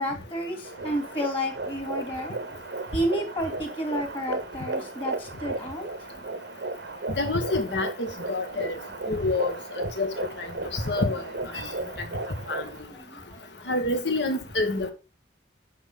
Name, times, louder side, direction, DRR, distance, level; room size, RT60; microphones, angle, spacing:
voice 1, 0.0-2.4 2.9-5.9 10.6-10.8 11.8-12.2 12.6-13.2 13.6-13.7, equal, 30° left, 2.7 m, -31 dB
sound 1, 0.6-12.8, right 3 dB, 65° right, 0.8 m, -35 dB
voice 2, 7.2-8.7 9.1-9.5 10.0-10.1 10.7-11.2 12.5-12.6 13.7-14.9, left 2 dB, 70° left, 1.7 m, -27 dB
9.3 x 6.3 x 3.8 m
head